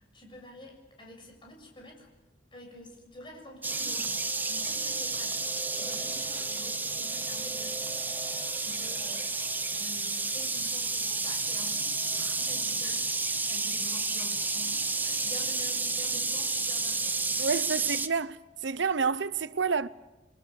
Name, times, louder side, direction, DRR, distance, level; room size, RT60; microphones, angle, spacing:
voice 1, 0.0-2.1 2.5-5.5 5.8-7.8 8.7-13.0 13.5-17.5 17.8-17.9, left 1 dB, 25° left, 7.4 m, -48 dB
sound 1, 3.6-18.1, right 3 dB, 10° right, 0.9 m, -31 dB
voice 2, 17.4-18.4 18.6-19.9, right 5 dB, 90° right, 0.8 m, -28 dB
30.0 x 22.0 x 7.0 m
head